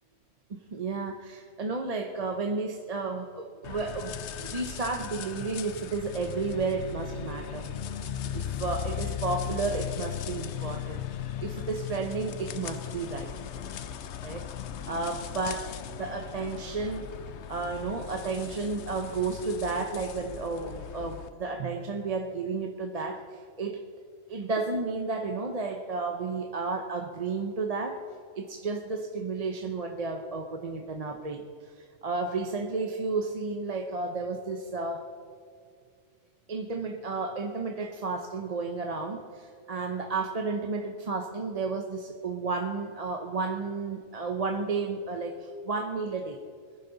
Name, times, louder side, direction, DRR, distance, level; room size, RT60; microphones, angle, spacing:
voice 1, 0.5-7.7 8.3-11.0 11.4-13.3 14.2-14.5 14.9-17.1 17.5-23.9 24.3-28.0 28.4-31.5 31.7-35.0 36.5-46.4, right 4 dB, 40° right, 4 dB, 0.8 m, -32 dB
sound 1, 3.6-21.3, left 9 dB, 75° left, 1.0 m, -37 dB
21.0 x 10.5 x 4.0 m, 2.2 s
omnidirectional pair, 1.2 m